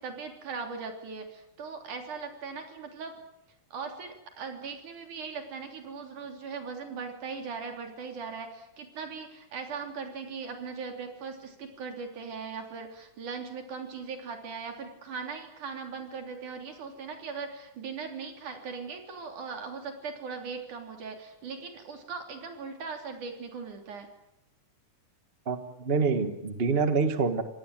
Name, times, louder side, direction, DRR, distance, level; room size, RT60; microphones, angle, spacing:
voice 1, 0.0-3.2 3.7-24.1, right 5 dB, 70° right, 5 dB, 4.8 m, -39 dB
voice 2, 25.5-27.4, right 4 dB, 35° right, 9 dB, 1.0 m, -26 dB
27.0 x 18.5 x 9.1 m, 0.84 s
omnidirectional pair, 3.6 m